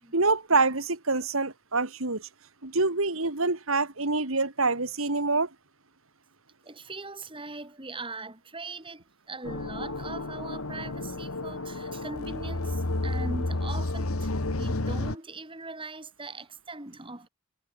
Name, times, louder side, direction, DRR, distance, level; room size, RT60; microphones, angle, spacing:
voice 1, 0.1-2.3 2.6-5.5, right 3 dB, 75° right, 2.8 m, -26 dB
voice 2, 6.6-17.3, right 3 dB, 25° right, 3.2 m, -41 dB
sound 1, 9.4-15.2, left 2 dB, 85° left, 1.7 m, -31 dB
head